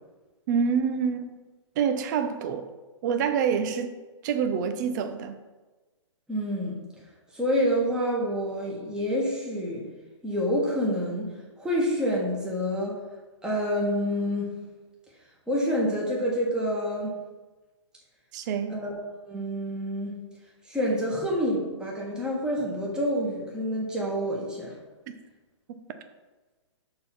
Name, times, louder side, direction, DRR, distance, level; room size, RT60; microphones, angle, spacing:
voice 1, 0.5-1.4 1.8-2.7 3.0-4.0 4.2-5.4 18.3-18.8, right 6 dB, 35° right, 8 dB, 0.7 m, -26 dB
voice 2, 6.3-6.8 7.3-9.8 10.2-11.3 11.6-13.0 13.4-14.6 15.5-17.1 18.7-18.9 19.2-20.2 20.6-24.8, equal, 5° right, -4 dB, 1.5 m, -27 dB
6.7 x 3.8 x 5.9 m, 1.2 s
hypercardioid pair, 150°, 16 cm